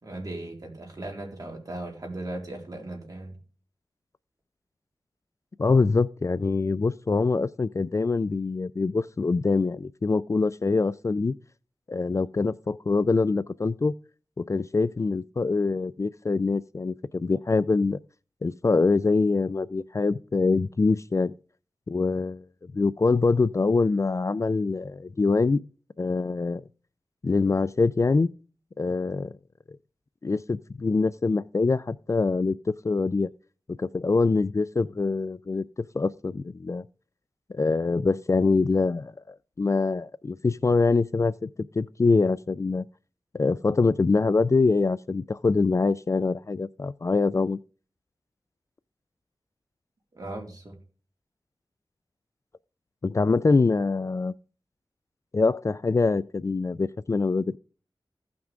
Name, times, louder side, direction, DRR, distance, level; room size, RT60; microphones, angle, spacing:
voice 1, 0.0-3.3 50.1-50.8, right 2 dB, 45° right, 4.0 m, -37 dB
voice 2, 5.6-11.3 11.9-13.9 14.4-18.0 18.4-21.3 21.9-25.6 26.0-26.6 27.2-28.3 28.8-29.3 30.2-33.3 33.8-35.6 35.9-36.8 37.5-41.5 41.7-42.8 43.3-47.6 53.0-54.3 55.3-57.6, left 3 dB, 35° left, 0.3 m, -24 dB
16.0 x 6.0 x 3.7 m
wide cardioid pair, 95°, 8 cm